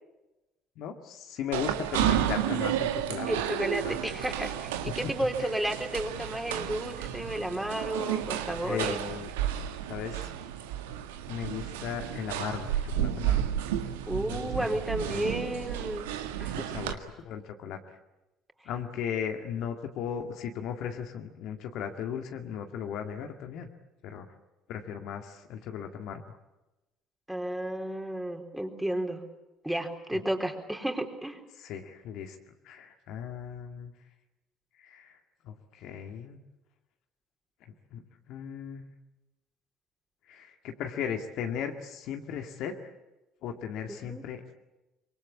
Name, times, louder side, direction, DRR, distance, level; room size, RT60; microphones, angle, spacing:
voice 1, 0.8-3.3 3.8-4.0 4.9-5.1 5.4-5.5 8.6-9.3 9.9-10.3 11.3-13.4 14.3-15.4 16.5-17.8 18.7-23.7 24.0-24.3 24.7-26.4 30.1-30.2 31.6-32.4 32.6-33.9 34.8-35.2 35.4-36.4 37.9-38.0 38.3-38.9 40.3-42.8 43.4-44.5, left 8 dB, 60° left, 5 dB, 2.0 m, -37 dB
sound 1, 1.5-16.9, right 11 dB, 75° right, 1.7 m, -32 dB
voice 2, 3.3-9.0 14.1-16.1 16.4-16.7 27.3-29.2 29.6-31.4 43.9-44.2, right 1 dB, 5° right, 4 dB, 4.0 m, -32 dB
24.5 x 23.5 x 8.5 m, 1.0 s
figure-of-eight pair, 55°, 0 cm